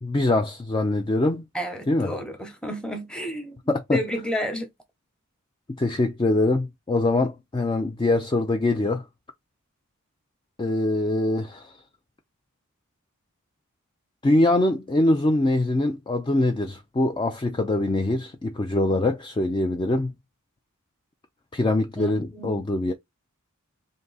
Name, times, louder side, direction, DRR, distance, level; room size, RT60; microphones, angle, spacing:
voice 1, 0.0-1.4 1.9-2.1 3.7-4.0 5.8-9.0 10.6-11.7 14.2-20.1 21.5-22.9, left 2 dB, 20° left, 0.4 m, -23 dB
voice 2, 1.5-3.6 3.9-4.7 22.0-22.6, equal, 5° left, 0.9 m, -31 dB
3.6 x 2.7 x 3.9 m
head